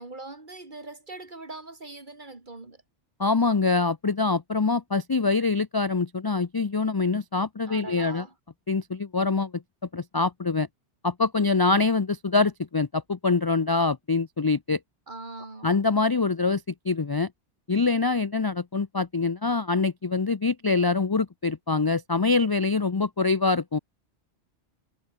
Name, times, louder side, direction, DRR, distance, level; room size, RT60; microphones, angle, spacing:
voice 1, 0.0-2.8 7.7-8.3 15.1-15.7, right 2 dB, 40° right, 2.9 m, -41 dB
voice 2, 3.2-8.2 8.7-9.6 9.9-10.7 11.0-14.8 15.6-17.3 17.7-23.8, left 4 dB, 30° left, 0.4 m, -24 dB
omnidirectional pair, 1.2 m